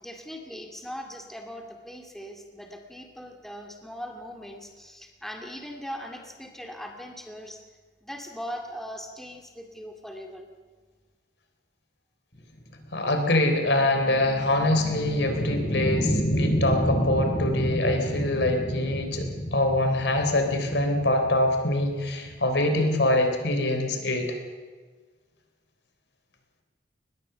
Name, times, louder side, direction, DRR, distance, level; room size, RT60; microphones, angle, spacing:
voice 1, 0.0-7.6 8.0-10.5, equal, ahead, 3 dB, 2.2 m, -40 dB
sound 1, 12.6-23.3, equal, 45° left, 6.8 m, -30 dB
voice 2, 12.9-24.4, left 1 dB, 80° left, 5 dB, 3.7 m, -24 dB
22.5 x 20.0 x 6.9 m, 1.4 s
head